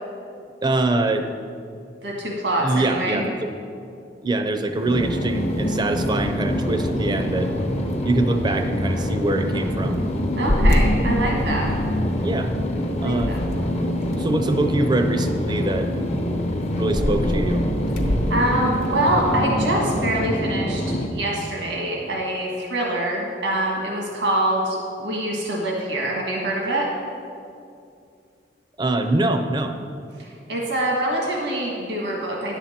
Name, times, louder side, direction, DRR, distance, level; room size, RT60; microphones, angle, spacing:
voice 1, 0.6-1.3 2.6-3.5 4.2-7.5 8.0-10.0 12.2-12.5 13.0-13.3 14.2-16.1 16.8-17.6 28.8-29.7, right 2 dB, 25° right, 7 dB, 0.5 m, -23 dB
voice 2, 2.0-3.2 10.3-11.7 12.9-13.4 18.3-26.9 30.2-32.6, right 1 dB, 85° right, -2 dB, 1.6 m, -25 dB
sound 1, 4.7-19.5, equal, 55° left, 1.0 m, -29 dB
sound 2, 4.8-21.1, equal, 40° left, 0.7 m, -25 dB
10.5 x 7.2 x 4.3 m, 2.4 s
head